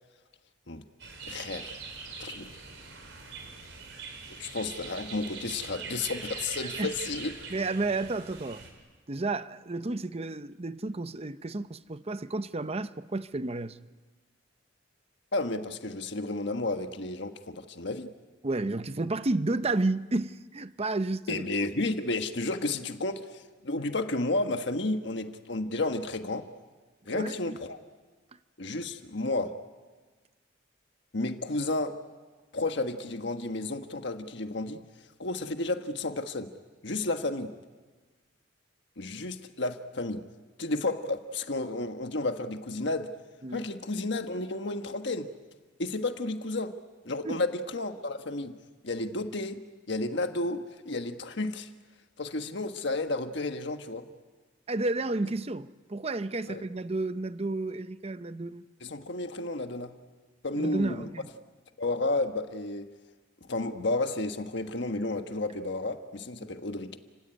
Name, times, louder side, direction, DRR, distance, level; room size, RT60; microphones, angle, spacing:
sound 1, 1.0-8.7, right 4 dB, 70° right, 4.9 m, -42 dB
voice 1, 1.2-1.8 2.2-2.6 4.4-7.3 15.3-18.1 21.3-26.5 27.1-27.8 28.6-29.6 31.1-32.0 32.5-34.8 35.2-36.5 36.8-37.5 39.0-40.2 40.6-43.1 43.5-45.3 45.8-46.8 47.0-48.5 48.8-49.6 49.9-51.7 52.2-54.1 56.5-56.6 58.8-59.9 60.4-61.1 61.8-62.9 63.5-67.0, left 2 dB, 65° left, 1.4 m, -32 dB
voice 2, 7.5-8.6 9.1-13.8 18.4-21.4 27.1-27.6 43.4-43.7 47.2-47.4 54.7-58.7 60.6-61.3, right 2 dB, 35° right, 0.7 m, -31 dB
30.0 x 17.0 x 9.9 m
head